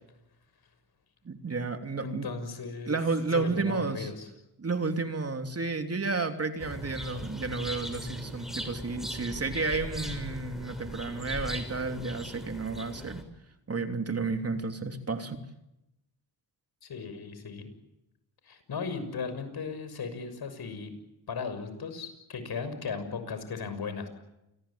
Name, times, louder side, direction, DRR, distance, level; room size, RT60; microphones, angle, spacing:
voice 1, 1.2-2.3 2.9-4.1 4.6-13.2 13.7-15.4, right 3 dB, 35° right, 6 dB, 3.1 m, -31 dB
voice 2, 2.0-3.0 3.3-4.3 16.8-17.7 18.4-20.9 21.3-24.1, left 5 dB, 60° left, 10 dB, 6.5 m, -36 dB
sound 1, 6.6-13.2, equal, ahead, 6.2 m, -39 dB
28.5 x 21.0 x 8.7 m, 0.90 s
cardioid pair, 70°, 42 cm